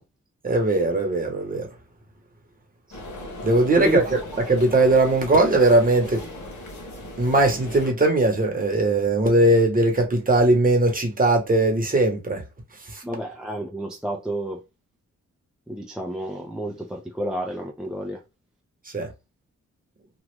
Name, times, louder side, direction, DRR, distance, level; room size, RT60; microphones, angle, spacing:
voice 1, 0.4-1.7 3.4-4.2 4.5-6.2 7.2-12.4 18.9-19.1, right 2 dB, 30° right, 1.0 m, -19 dB
sound 1, 2.9-7.9, left 1 dB, 80° left, 1.3 m, -38 dB
voice 2, 13.0-14.6 15.7-18.2, equal, 5° right, 0.4 m, -30 dB
3.0 x 2.4 x 3.2 m
wide cardioid pair, 125°, 29 cm